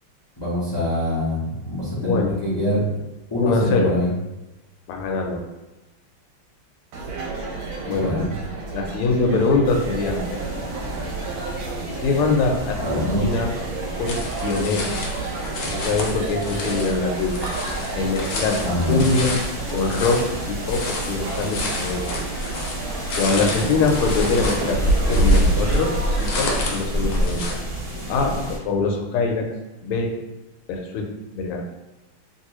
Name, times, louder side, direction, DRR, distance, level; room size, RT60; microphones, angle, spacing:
voice 1, 0.4-3.0 3.3-4.1 7.9-8.3 12.8-13.2 18.6-19.1 23.5-23.6, left 1 dB, 40° left, -11 dB, 0.3 m, -24 dB
voice 2, 2.0-2.3 3.4-3.9 4.9-5.4 7.8-8.2 8.7-10.6 12.0-13.5 14.0-15.0 15.7-17.4 17.9-18.6 18.9-19.4 19.7-22.1 23.1-27.6 28.1-29.5 29.8-30.2 30.7-31.6, left 3 dB, 85° left, 2 dB, 1.5 m, -23 dB
sound 1, 6.9-26.7, right 3 dB, 75° right, 1.3 m, -32 dB
sound 2, 9.6-28.6, right 1 dB, 45° right, 0.8 m, -32 dB
sound 3, 14.1-27.5, equal, 70° left, 1.2 m, -27 dB
3.0 x 2.9 x 2.9 m, 1.0 s
omnidirectional pair, 2.4 m